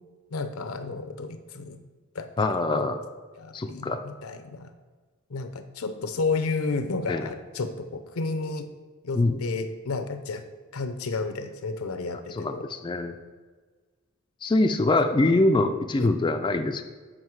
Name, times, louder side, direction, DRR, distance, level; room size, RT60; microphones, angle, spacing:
voice 1, 0.3-1.8 2.1-2.5 2.7-2.8 3.4-4.7 5.3-8.7 9.0-10.4 10.7-12.6 16.0-16.1, left 3 dB, 80° left, 9 dB, 0.6 m, -32 dB
voice 2, 2.4-3.0 3.5-4.0 7.1-7.3 9.1-9.4 12.3-13.1 14.4-16.8, left 2 dB, 20° left, 6 dB, 0.3 m, -24 dB
7.4 x 5.5 x 4.7 m, 1.4 s
head